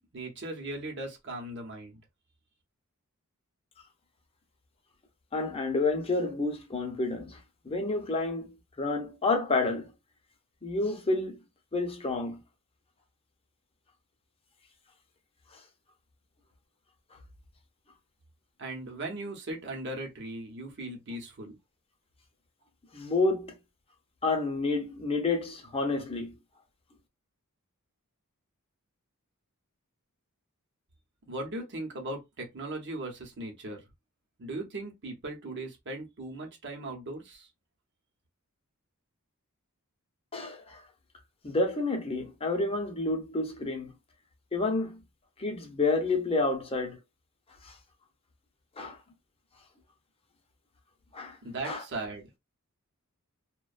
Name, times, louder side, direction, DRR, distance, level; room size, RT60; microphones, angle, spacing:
voice 1, 0.1-2.0 18.6-21.6 31.3-33.8 34.4-37.5 51.4-52.3, right 2 dB, 55° right, 0.8 m, -38 dB
voice 2, 5.3-7.4 7.6-9.9 10.6-11.4 11.7-12.4 22.9-23.5 24.2-26.3 40.3-40.8 41.4-43.9 44.5-45.0 45.4-47.0 47.6-47.7 48.8-49.0 51.1-51.4 51.6-51.8, left 3 dB, 25° left, 0.7 m, -29 dB
2.4 x 2.2 x 2.5 m
head